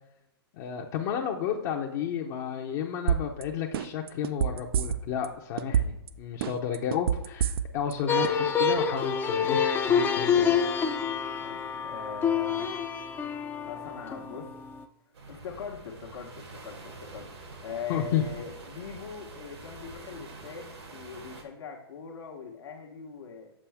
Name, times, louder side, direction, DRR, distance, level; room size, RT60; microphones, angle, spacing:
voice 1, 0.5-10.5 17.9-18.2, left 8 dB, 45° left, 0 dB, 0.8 m, -32 dB
sound 1, 3.1-3.4 3.7-5.3 5.6-6.1 6.4-7.9 8.2-8.3, right 8 dB, 60° right, 0.5 m, -26 dB
sound 2, 8.1-14.8, left 6 dB, 15° left, 0.5 m, -27 dB
voice 2, 11.3-12.7 13.6-14.5 15.3-17.3 17.6-23.5, left 6 dB, 75° left, 0 dB, 1.1 m, -41 dB
sound 3, 15.1-21.4, right 3 dB, 80° right, 1.9 m, -46 dB
7.4 x 5.4 x 3.4 m, 0.88 s
hypercardioid pair, 130°, 14 cm